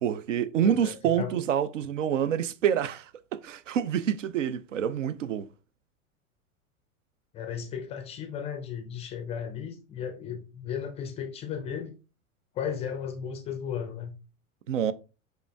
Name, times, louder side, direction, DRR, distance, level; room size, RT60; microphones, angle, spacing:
voice 1, 0.0-5.5 14.7-14.9, right 9 dB, 65° right, 0.5 m, -27 dB
voice 2, 0.6-1.4 7.3-11.9 12.5-14.2, left 8 dB, 15° left, 0.4 m, -35 dB
4.9 x 4.6 x 2.2 m
figure-of-eight pair, 90°, 42 cm